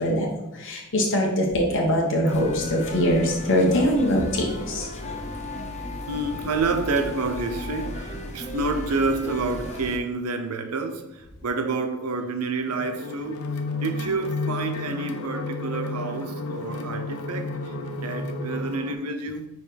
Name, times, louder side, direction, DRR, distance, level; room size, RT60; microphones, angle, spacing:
voice 1, 0.0-4.9, equal, 60° left, 1.1 m, -22 dB
sound 1, 2.3-10.0, left 1 dB, 30° left, 0.9 m, -35 dB
voice 2, 6.0-13.4 13.8-19.5, right 3 dB, 85° right, 0.8 m, -28 dB
sound 2, 12.7-18.9, left 2 dB, 80° left, 0.8 m, -32 dB
5.3 x 4.7 x 5.3 m
head